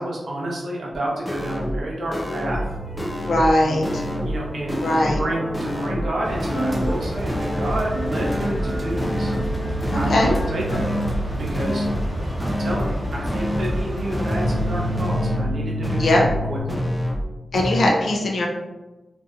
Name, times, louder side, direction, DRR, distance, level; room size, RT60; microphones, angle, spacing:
voice 1, 0.0-2.6 3.6-3.9 4.2-4.9 5.2-9.3 9.9-10.9 11.4-11.8 12.4-16.2 16.5-16.8, right 1 dB, 70° right, -3 dB, 0.7 m, -29 dB
sound 1, 0.9-1.0 1.3-1.8 2.1-2.7 3.0-3.5 3.8-4.4 4.7-5.3 5.5-6.1 6.4-7.0 7.3-7.8 8.1-8.7 9.0-9.5 9.8-10.4 10.7-11.3 11.5-12.1 12.4-13.0 13.3-13.8 14.1-14.7 15.0-15.5 15.8-16.4 16.7-17.3 17.5-17.9, equal, 10° left, 0.3 m, -26 dB
sound 2, 2.5-16.6, right 1 dB, 35° left, 0.7 m, -32 dB
voice 2, 3.3-4.0 4.8-5.2 10.1-10.3 16.0-16.2 17.5-18.5, left 1 dB, 75° left, 0 dB, 0.5 m, -19 dB
sound 3, 6.2-15.0, equal, 20° right, 0.8 m, -29 dB
2.6 x 2.4 x 2.4 m, 1.1 s
wide cardioid pair, 110°, 0 cm